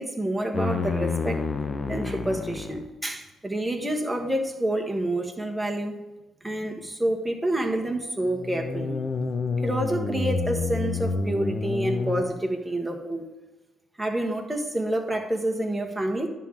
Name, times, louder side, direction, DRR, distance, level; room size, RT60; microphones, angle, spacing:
voice 1, 0.0-1.4 1.9-5.9 6.4-9.0 9.6-13.3 14.0-16.3, right 1 dB, 10° right, 2 dB, 1.3 m, -28 dB
sound 1, 0.5-2.9 8.2-12.2, left 4 dB, 40° left, 0.7 m, -29 dB
10.5 x 3.8 x 7.3 m, 1.1 s
cardioid pair, 90°, 0 cm